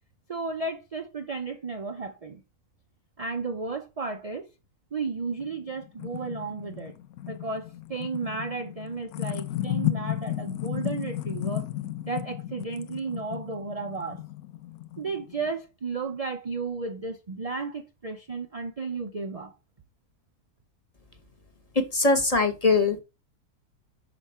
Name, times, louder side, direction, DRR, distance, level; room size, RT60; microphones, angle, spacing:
voice 1, 0.3-2.4 3.2-4.5 4.9-7.0 7.3-11.7 12.0-14.2 15.0-19.5, right 4 dB, 55° right, 0.4 m, -33 dB
sound 1, 5.4-15.5, left 14 dB, 75° left, 1.1 m, -34 dB
voice 2, 21.7-23.0, left 3 dB, 30° left, 1.0 m, -22 dB
6.0 x 5.2 x 5.4 m
omnidirectional pair, 1.6 m